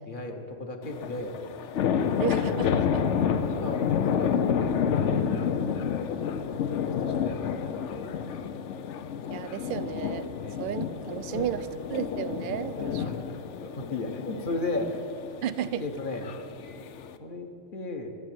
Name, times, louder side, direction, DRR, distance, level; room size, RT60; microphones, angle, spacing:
voice 1, 0.0-1.6 3.1-5.6 6.6-8.6 10.4-10.6 11.3-11.6 12.4-12.5 12.7-15.0 15.8-16.3 17.2-18.1, left 2 dB, 45° left, 4 dB, 1.3 m, -36 dB
sound 1, 0.8-17.2, left 7 dB, 75° left, 0.9 m, -29 dB
voice 2, 2.2-3.0 5.0-5.5 6.8-7.0 9.3-10.3 10.6-13.0 15.4-15.9, right 9 dB, 55° right, 13 dB, 0.6 m, -33 dB
12.0 x 7.8 x 9.0 m, 2.6 s
omnidirectional pair, 1.3 m